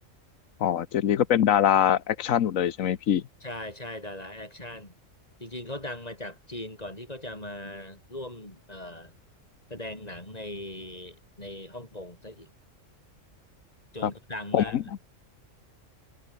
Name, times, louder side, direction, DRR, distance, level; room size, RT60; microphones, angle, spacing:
voice 1, 0.6-3.2 14.0-14.1 14.5-14.8, left 10 dB, 90° left, 1.3 m, -23 dB
voice 2, 3.4-5.0 5.4-9.2 9.7-12.5 13.9-14.8, left 1 dB, 30° left, 5.4 m, -39 dB
omnidirectional pair, 1.3 m